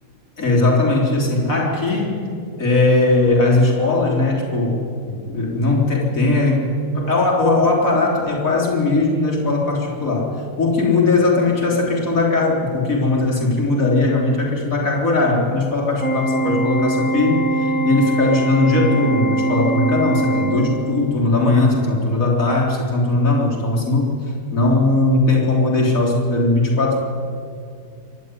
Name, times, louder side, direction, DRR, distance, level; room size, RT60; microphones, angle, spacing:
voice 1, 0.4-2.2 2.6-6.7 6.9-24.2 24.5-27.0, left 2 dB, 45° left, -1 dB, 4.0 m, -19 dB
Organ, 16.0-21.1, right 2 dB, 5° left, 1.9 m, -22 dB
26.0 x 11.5 x 9.7 m, 2.3 s
omnidirectional pair, 2.0 m